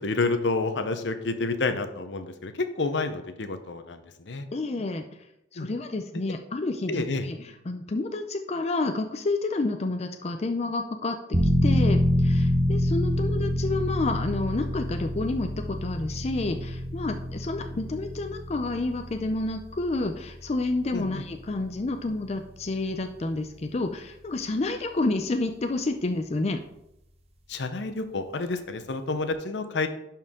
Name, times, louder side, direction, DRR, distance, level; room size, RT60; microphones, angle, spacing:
voice 1, 0.0-4.5 5.6-5.7 6.9-7.3 20.9-21.2 27.5-29.9, left 3 dB, 70° left, 9 dB, 0.8 m, -29 dB
voice 2, 4.5-5.0 5.5-7.4 7.7-26.6, left 2 dB, 35° left, 5 dB, 0.5 m, -29 dB
sound 1, 11.3-23.8 24.2-24.3, equal, 35° right, 0.9 m, -28 dB
11.0 x 4.4 x 3.6 m, 0.84 s
head